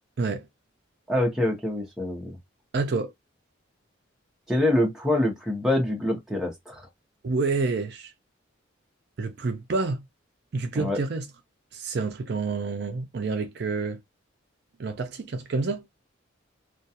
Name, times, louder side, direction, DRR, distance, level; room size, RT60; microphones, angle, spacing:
voice 1, 1.1-2.4 4.5-6.9 10.7-11.0, left 1 dB, 5° right, 0.7 m, -25 dB
voice 2, 2.7-3.1 7.2-8.1 9.2-10.0 10.5-11.3 11.7-14.0 14.8-15.8, right 3 dB, 55° right, 0.4 m, -28 dB
2.3 x 2.3 x 2.7 m
head